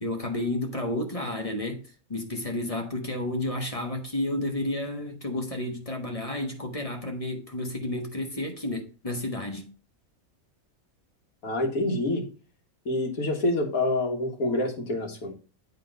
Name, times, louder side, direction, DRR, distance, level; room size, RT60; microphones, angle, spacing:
voice 1, 0.0-1.8 2.1-9.7, left 1 dB, 25° left, 1.2 m, -31 dB
voice 2, 11.4-12.3 12.9-15.3, left 2 dB, 80° left, 1.9 m, -27 dB
8.4 x 3.8 x 5.2 m
omnidirectional pair, 1.5 m